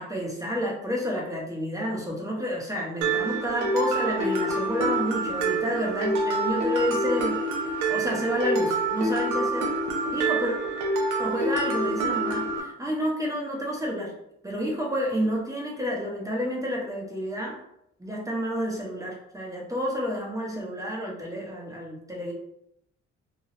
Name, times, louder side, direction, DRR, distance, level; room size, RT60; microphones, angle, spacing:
voice 1, 0.0-9.7 10.1-10.5 11.2-14.1 14.4-17.6 18.0-22.3, equal, 10° right, -3 dB, 0.8 m, -30 dB
Mallet percussion, 3.0-12.6, right 2 dB, 85° right, 0.7 m, -27 dB
3.1 x 2.2 x 2.8 m, 0.77 s
cardioid pair, 90°, 30 cm